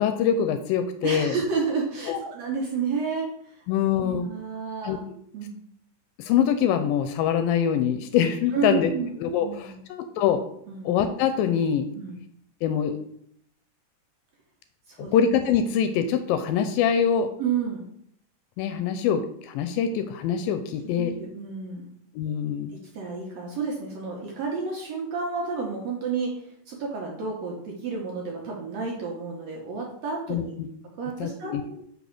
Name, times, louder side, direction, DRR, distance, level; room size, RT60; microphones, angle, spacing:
voice 1, 0.0-1.3 2.1-2.2 3.7-4.3 4.8-5.0 6.2-8.9 9.2-10.4 10.9-11.9 12.6-13.0 15.1-17.3 18.6-21.1 22.2-22.7 30.3-30.7 31.2-31.6, left 8 dB, 85° left, 8 dB, 2.3 m, -24 dB
voice 2, 1.0-3.6 4.0-5.0 5.3-5.6 8.5-9.1 9.4-9.8 10.7-11.0 11.9-12.2 14.9-15.1 17.4-17.9 20.9-21.9 22.7-30.5 31.0-31.8, right 5 dB, 65° right, -2 dB, 1.8 m, -31 dB
5.3 x 4.2 x 5.9 m, 0.69 s
omnidirectional pair, 4.1 m